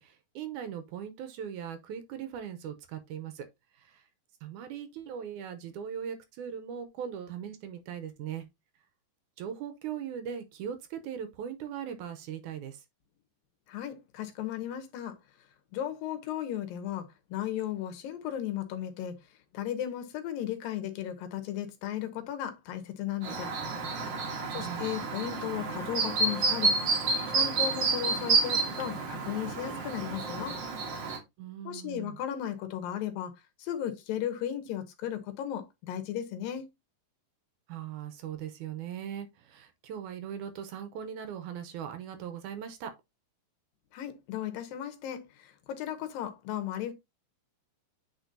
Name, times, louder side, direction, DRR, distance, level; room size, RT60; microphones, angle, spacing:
voice 1, 0.0-3.5 3.7-4.1 4.4-8.5 9.4-12.9 24.5-24.9 31.4-32.2 37.7-42.9, right 8 dB, 75° right, 2.1 m, -39 dB
voice 2, 13.7-15.2 15.7-19.2 19.5-23.5 24.5-26.8 27.3-30.6 31.7-33.3 33.6-36.7 43.9-46.9, left 10 dB, 85° left, 2.9 m, -35 dB
Chirp tweet, 23.2-31.2, right 3 dB, 60° right, 1.2 m, -30 dB
9.0 x 4.4 x 2.7 m
omnidirectional pair, 3.9 m